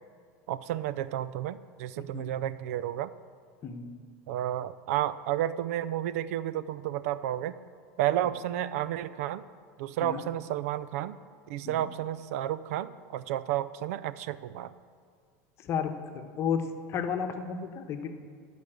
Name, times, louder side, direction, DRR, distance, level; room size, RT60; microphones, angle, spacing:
voice 1, 0.5-3.1 4.3-7.6 8.0-9.4 9.8-11.2 11.5-14.7, right 12 dB, 75° right, 16 dB, 0.5 m, -31 dB
voice 2, 15.6-18.1, left 7 dB, 35° left, 6 dB, 1.1 m, -33 dB
12.5 x 5.3 x 7.9 m, 2.1 s
supercardioid pair, 135°, 8 cm